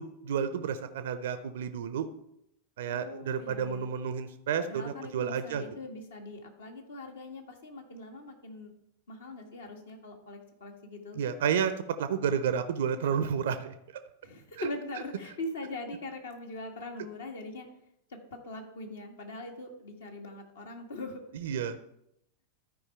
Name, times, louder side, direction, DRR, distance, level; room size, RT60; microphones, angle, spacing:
voice 1, 0.0-2.1 2.8-5.6 11.2-11.7 12.0-13.7 14.6-14.7 21.3-21.8, right 7 dB, 60° right, 11 dB, 0.5 m, -31 dB
voice 2, 2.9-3.9 4.6-8.7 9.1-11.2 14.2-17.7 18.1-21.2, left 2 dB, 65° left, 3 dB, 1.6 m, -42 dB
13.0 x 4.8 x 4.4 m, 0.79 s
figure-of-eight pair, 90°, 0 cm